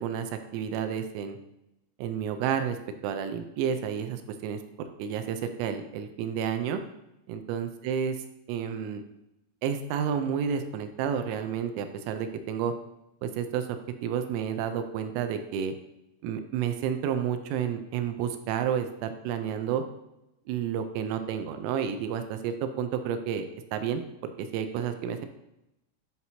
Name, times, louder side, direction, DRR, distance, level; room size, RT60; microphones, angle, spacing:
voice 1, 0.0-1.4 2.0-2.8 3.0-6.8 7.3-8.1 8.5-9.0 9.6-12.7 13.2-13.7 14.0-15.7 16.2-19.8 20.5-25.3, right 8 dB, 85° right, 8 dB, 3.1 m, -30 dB
9.4 x 5.8 x 2.8 m, 0.90 s
omnidirectional pair, 5.8 m